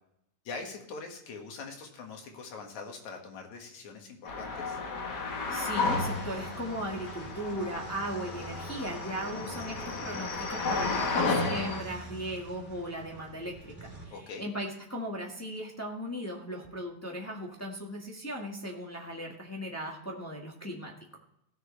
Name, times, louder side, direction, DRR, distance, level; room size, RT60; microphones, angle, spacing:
voice 1, 0.4-4.8 14.1-14.5, left 4 dB, 80° left, 2 dB, 3.1 m, -43 dB
sound 1, 4.2-11.8, left 3 dB, 45° left, 1.4 m, -33 dB
voice 2, 5.5-20.9, equal, 15° left, -1 dB, 0.5 m, -38 dB
sound 2, 5.7-14.0, right 2 dB, 5° right, 3.7 m, -46 dB
16.5 x 6.9 x 3.2 m, 0.77 s
omnidirectional pair, 3.3 m